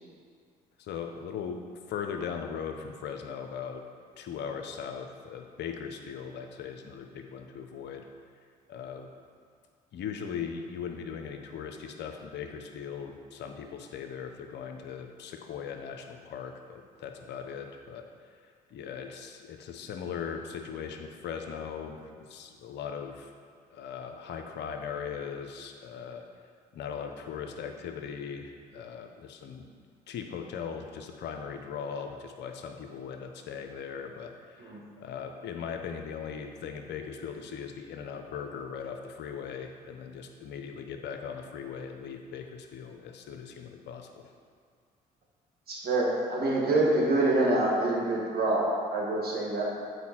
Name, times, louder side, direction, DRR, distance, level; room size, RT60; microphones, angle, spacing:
voice 1, 0.8-1.6 1.9-3.8 4.2-8.1 8.7-9.1 9.9-18.1 18.7-23.3 23.7-26.3 26.7-29.7 30.1-44.3, left 7 dB, 70° left, 5 dB, 0.8 m, -39 dB
voice 2, 45.7-49.6, right 2 dB, 55° right, -3 dB, 2.0 m, -26 dB
8.2 x 4.4 x 4.4 m, 2.1 s
supercardioid pair, 55°, 19 cm